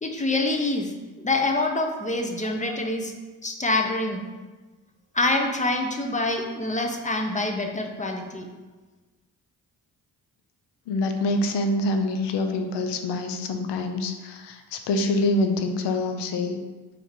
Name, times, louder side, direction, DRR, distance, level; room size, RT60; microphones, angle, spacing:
voice 1, 0.0-3.1 3.4-4.3 5.1-8.5, left 2 dB, 20° left, 3 dB, 0.7 m, -26 dB
voice 2, 2.4-2.8 10.9-16.6, left 2 dB, 85° left, 6 dB, 0.6 m, -26 dB
3.5 x 3.4 x 4.3 m, 1.3 s
supercardioid pair, 55°, 41 cm